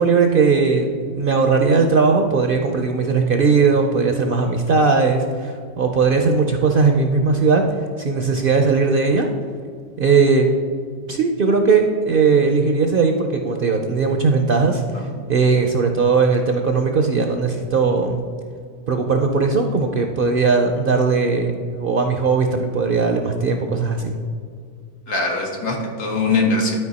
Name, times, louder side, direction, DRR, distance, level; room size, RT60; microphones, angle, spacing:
voice 1, 0.0-7.6 8.0-9.3 10.0-10.5 11.1-18.2 18.9-24.1, right 4 dB, 60° right, 4 dB, 0.6 m, -18 dB
voice 2, 25.1-26.8, left 3 dB, 85° left, -1 dB, 1.9 m, -21 dB
12.0 x 4.5 x 4.1 m, 2.1 s
omnidirectional pair, 1.5 m